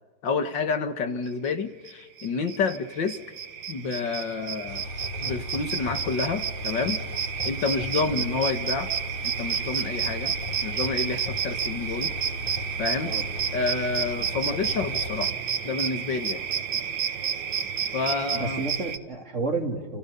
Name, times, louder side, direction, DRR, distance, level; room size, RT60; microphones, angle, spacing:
voice 1, 0.2-3.2 3.7-4.9 5.2-7.0 7.4-8.9 9.2-10.3 10.6-12.1 12.8-13.1 13.5-15.3 15.6-16.4 17.9-18.6, left 4 dB, 75° left, 7 dB, 2.4 m, -29 dB
sound 1, 1.9-2.0 2.2-19.0, right 7 dB, 80° right, 2.1 m, -31 dB
sound 2, 4.7-15.3, left 2 dB, 35° left, 1.3 m, -37 dB
voice 2, 18.3-20.0, right 3 dB, 40° right, 1 dB, 3.8 m, -30 dB
30.0 x 28.5 x 5.5 m, 1.3 s
omnidirectional pair, 2.0 m